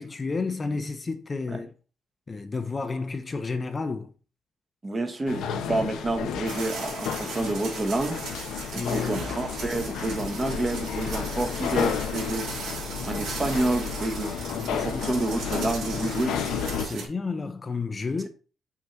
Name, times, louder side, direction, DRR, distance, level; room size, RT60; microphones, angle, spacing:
voice 1, 0.0-1.7 2.3-4.1 8.8-9.2 14.4-15.0 16.7-18.3, left 4 dB, 30° left, 0.6 m, -31 dB
voice 2, 4.8-8.2 8.7-12.5 13.0-14.3 14.7-16.4 16.8-17.1, right 2 dB, 25° right, 1.0 m, -29 dB
sound 1, 5.3-16.9, left 7 dB, 90° left, 0.7 m, -32 dB
sound 2, 6.4-17.1, right 4 dB, 85° right, 2.4 m, -38 dB
6.1 x 2.8 x 5.6 m
cardioid pair, 105°, 0 cm